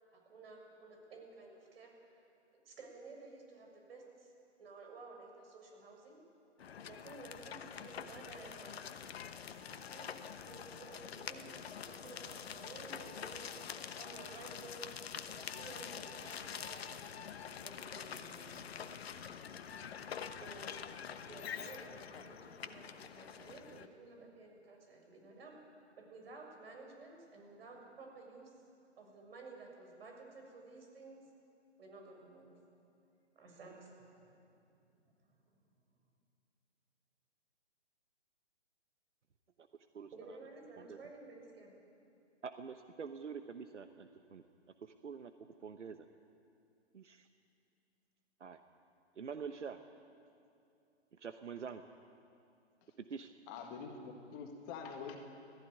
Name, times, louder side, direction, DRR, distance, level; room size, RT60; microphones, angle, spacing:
voice 1, 0.2-2.2 2.6-4.3 4.6-6.2 6.8-9.2 9.4-11.5 11.8-13.6 14.0-14.8 15.2-17.0 17.6-18.9 20.4-20.9 21.2-25.6 26.0-28.5 29.0-31.3 31.8-32.5 33.3-34.4 35.0-35.4 40.1-41.7, right 3 dB, 55° right, 1 dB, 6.8 m, -54 dB
sound 1, 6.6-23.9, left 7 dB, 60° left, 1.2 m, -46 dB
voice 2, 39.9-40.4 40.8-41.0 42.4-44.4 44.8-45.3 45.6-46.1 46.9-47.0 48.4-48.6 49.2-49.8 51.1-51.8 53.1-53.3, right 6 dB, 85° right, 8 dB, 1.1 m, -46 dB
voice 3, 53.5-55.2, left 5 dB, 25° left, 4 dB, 1.9 m, -45 dB
18.5 x 15.0 x 9.7 m, 2.6 s
hypercardioid pair, 135°, 35 cm